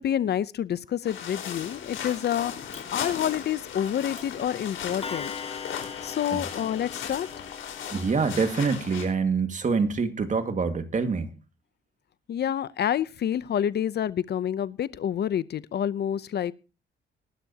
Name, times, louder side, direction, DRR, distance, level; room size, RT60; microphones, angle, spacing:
voice 1, 0.0-2.5 2.9-5.3 6.0-7.3 12.3-16.5, left 10 dB, 55° left, 18 dB, 0.7 m, -28 dB
sound 1, 1.0-9.1, left 8 dB, 80° left, 4.5 m, -37 dB
Clock, 2.7-2.8 3.9-4.0 4.2-4.4 5.0-8.3, left 6 dB, 30° left, 2.0 m, -39 dB
voice 2, 7.9-11.3, right 5 dB, 40° right, 8 dB, 2.0 m, -25 dB
19.5 x 12.0 x 2.9 m, 0.32 s
cardioid pair, 90°, 20 cm